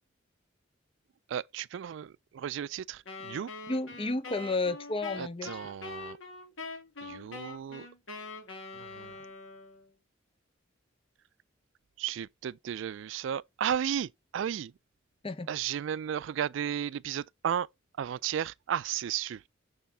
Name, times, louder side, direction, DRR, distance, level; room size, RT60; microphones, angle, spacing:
voice 1, 1.3-3.5 5.2-6.2 7.0-7.9 8.7-9.2 12.0-14.7 15.5-17.7 18.0-19.5, right 9 dB, 65° right, 0.3 m, -34 dB
Wind instrument woodwind instrument, 3.1-9.9, left 3 dB, 85° left, 2.4 m, -43 dB
voice 2, 3.7-5.5 15.2-15.5, left 2 dB, 30° left, 0.7 m, -32 dB
6.9 x 6.2 x 3.4 m
head